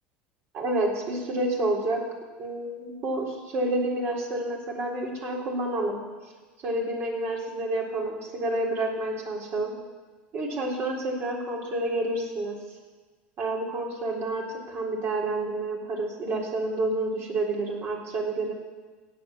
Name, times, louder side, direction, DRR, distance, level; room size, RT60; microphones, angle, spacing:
voice 1, 0.5-2.0 2.4-6.0 6.6-9.7 10.3-12.6 13.4-18.5, right 2 dB, 45° right, -2 dB, 3.7 m, -29 dB
16.5 x 8.3 x 7.2 m, 1.3 s
supercardioid pair, 105°, 5 cm